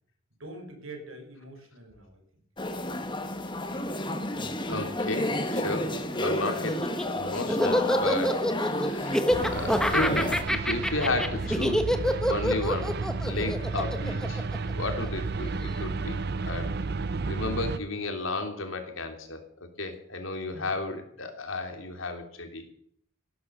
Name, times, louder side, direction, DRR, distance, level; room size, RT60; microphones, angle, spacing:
voice 1, 0.4-2.4 20.5-20.6, right 2 dB, 85° right, 4 dB, 5.2 m, -45 dB
sound 1, 2.6-10.4, left 1 dB, 25° left, 1.6 m, -31 dB
voice 2, 4.7-6.9 7.1-11.9 12.3-14.4 14.7-16.2 16.4-16.8 17.3-22.7, left 2 dB, 75° left, 5 dB, 3.2 m, -33 dB
Laughter, 6.7-15.1, equal, 5° left, 1.1 m, -27 dB
sound 2, 9.3-17.8, right 3 dB, 50° right, 0.7 m, -32 dB
15.5 x 12.0 x 6.9 m, 0.63 s
head